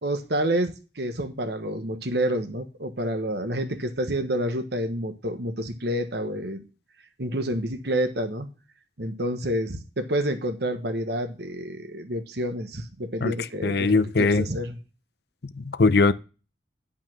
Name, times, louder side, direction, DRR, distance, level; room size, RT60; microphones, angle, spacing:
voice 1, 0.0-6.6 7.2-8.5 9.0-14.8, right 1 dB, 65° right, 1.2 m, -28 dB
voice 2, 13.2-14.5 15.6-16.1, left 3 dB, 60° left, 0.6 m, -21 dB
11.0 x 5.6 x 6.2 m
head